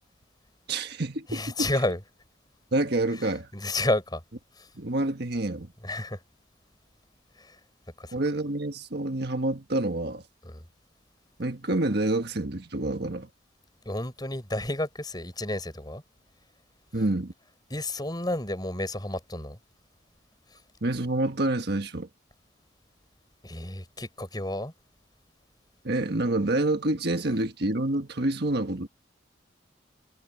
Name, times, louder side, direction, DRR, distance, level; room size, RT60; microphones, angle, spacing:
voice 1, 0.7-1.7 2.7-3.5 4.7-5.7 8.1-10.2 11.4-13.3 16.9-17.3 20.8-22.1 25.8-28.9, right 2 dB, 55° right, 1.5 m, -27 dB
voice 2, 1.3-2.0 3.1-3.2 3.5-4.2 4.6-4.7 5.8-6.2 7.4-7.6 8.0-8.1 10.4-10.6 13.9-16.0 17.7-19.6 23.4-24.7, left 1 dB, 20° left, 5.7 m, -31 dB
head